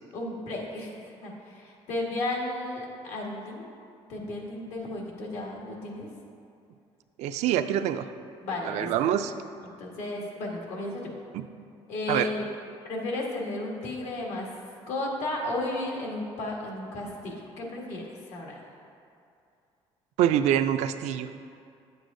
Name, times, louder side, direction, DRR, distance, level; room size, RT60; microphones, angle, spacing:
voice 1, 0.1-3.7 4.1-6.1 8.4-9.0 9.6-11.1 11.9-12.4 12.9-14.5 14.9-18.0 18.3-18.6, left 2 dB, 85° left, -1 dB, 1.5 m, -34 dB
voice 2, 7.2-8.1 8.6-9.3 11.3-11.4 12.1-12.3 20.2-21.3, right 10 dB, 85° right, 10 dB, 0.4 m, -25 dB
9.6 x 7.8 x 2.6 m, 2.4 s
cardioid pair, 110°, 11 cm